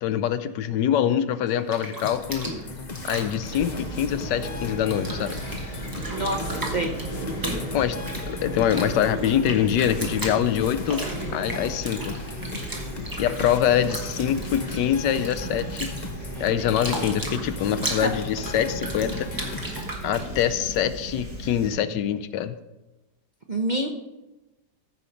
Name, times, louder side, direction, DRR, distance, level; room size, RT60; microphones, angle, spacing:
voice 1, 0.0-2.5 3.0-5.4 7.7-8.0 8.2-11.0 11.3-12.2 13.2-15.9 16.4-19.3 20.0-22.5, left 10 dB, 85° left, 12 dB, 1.3 m, -24 dB
Bathtub (filling or washing), 1.5-4.5 4.8-20.8, right 1 dB, 10° right, 1.5 m, -36 dB
sound 1, 2.0-19.8, left 3 dB, 40° left, 0.7 m, -37 dB
Fowl / Chirp tweet, 3.4-21.7, right 2 dB, 85° right, 4.3 m, -36 dB
voice 2, 6.1-6.9 17.8-18.1 23.5-23.9, right 1 dB, 40° right, 2 dB, 0.7 m, -27 dB
14.5 x 5.7 x 5.1 m, 1.0 s
omnidirectional pair, 1.8 m